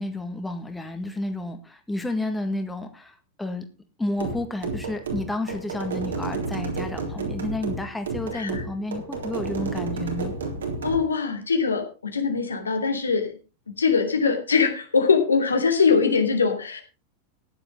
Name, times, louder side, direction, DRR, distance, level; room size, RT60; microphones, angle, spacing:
voice 1, 0.0-3.7 4.0-10.3, left 2 dB, 5° left, 6 dB, 1.8 m, -31 dB
sound 1, 4.2-11.0, right 3 dB, 65° right, 3.6 m, -31 dB
voice 2, 8.3-8.7 10.8-13.3 13.7-16.8, left 5 dB, 75° left, 5 dB, 2.7 m, -22 dB
15.0 x 11.0 x 3.8 m, 0.32 s
figure-of-eight pair, 90°, 0 cm